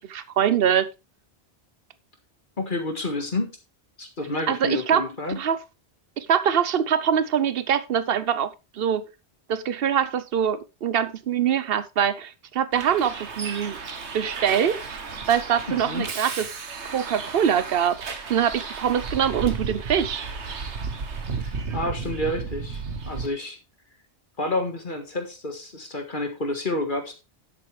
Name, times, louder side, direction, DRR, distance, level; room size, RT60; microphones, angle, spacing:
voice 1, 0.1-0.9 4.5-5.0 5.4-5.6 6.2-9.1 9.5-13.8 14.1-14.8 15.3-16.5 16.9-20.2, right 8 dB, 60° right, 1.0 m, -23 dB
voice 2, 2.6-3.5 4.0-5.4 15.7-16.1 21.4-23.6 24.4-27.1, left 2 dB, 50° left, 1.8 m, -29 dB
Bus, 12.7-23.3, right 5 dB, 85° right, 1.6 m, -33 dB
11.0 x 8.1 x 3.3 m
omnidirectional pair, 1.1 m